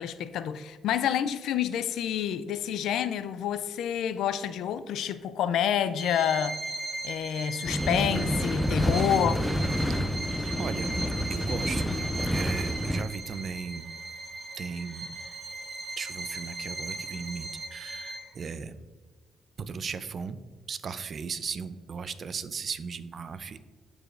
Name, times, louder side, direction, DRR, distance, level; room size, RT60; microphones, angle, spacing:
voice 1, 0.0-6.6 7.0-9.4, left 9 dB, 80° left, 0.4 m, -28 dB
Bowed string instrument, 6.0-18.5, right 2 dB, 30° right, 1.3 m, -38 dB
sound 1, 7.6-13.0, equal, 5° left, 0.5 m, -28 dB
voice 2, 10.6-10.9 11.3-12.0 12.3-13.9 14.5-15.1 16.0-18.8 19.6-20.4 20.7-23.6, right 5 dB, 50° right, 0.5 m, -36 dB
13.5 x 4.8 x 2.5 m
cardioid pair, 90°, 0 cm